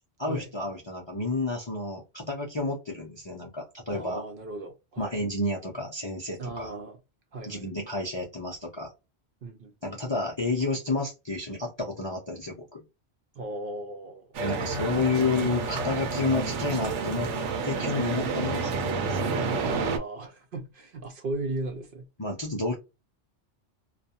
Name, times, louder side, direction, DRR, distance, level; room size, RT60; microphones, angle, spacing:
voice 1, 0.2-4.2 5.0-6.7 7.4-8.9 9.8-12.8 14.4-17.3 17.6-19.3 22.2-22.7, left 3 dB, 35° left, 0.4 m, -30 dB
voice 2, 3.9-5.2 6.4-7.0 7.3-7.7 9.4-9.7 13.4-14.3 15.0-15.3 19.7-22.1, right 2 dB, 60° right, 0.7 m, -36 dB
sound 1, 14.3-20.0, right 4 dB, 80° right, 0.9 m, -29 dB
2.4 x 2.2 x 2.7 m
omnidirectional pair, 1.2 m